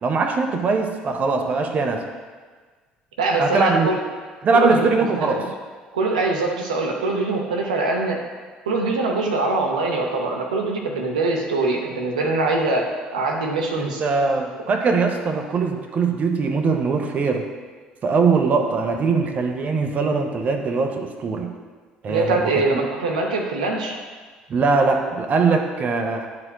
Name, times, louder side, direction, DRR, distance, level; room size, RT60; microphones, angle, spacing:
voice 1, 0.0-2.0 3.4-3.9 4.4-5.4 13.8-17.5 18.0-21.5 22.0-22.8 24.5-26.3, right 4 dB, 35° right, 4 dB, 0.6 m, -21 dB
voice 2, 3.2-4.0 4.5-5.5 5.9-8.2 8.7-14.0 22.1-24.0, right 3 dB, 75° right, 1 dB, 0.7 m, -23 dB
10.5 x 4.3 x 2.3 m, 1.5 s
figure-of-eight pair, 55°, 4 cm